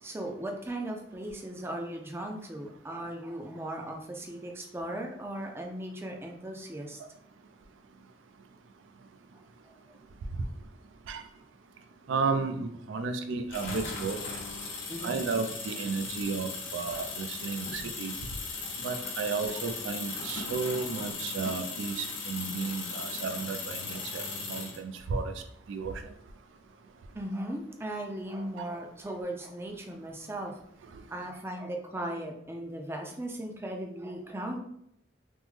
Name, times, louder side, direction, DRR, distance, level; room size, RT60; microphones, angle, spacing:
voice 1, 0.0-7.0 9.3-9.4 14.9-15.2 18.6-18.7 27.1-30.5 31.1-34.6, right 1 dB, 15° right, 0.4 m, -37 dB
voice 2, 12.1-14.2 15.0-18.1 18.8-25.3 25.7-25.9, right 4 dB, 90° right, 0.4 m, -33 dB
sound 1, 13.5-24.8, left 4 dB, 80° left, 0.7 m, -37 dB
3.4 x 2.0 x 3.1 m
head